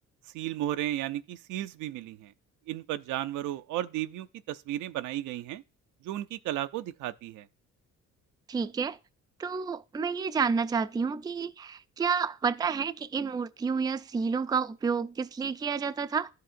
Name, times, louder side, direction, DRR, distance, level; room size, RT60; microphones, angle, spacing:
voice 1, 0.3-2.3 2.7-5.6 6.0-7.5, right 13 dB, 85° right, 0.5 m, -34 dB
voice 2, 8.5-9.0 9.4-16.3, right 5 dB, 15° right, 0.3 m, -30 dB
12.5 x 4.8 x 2.5 m
cardioid pair, 90°, 30 cm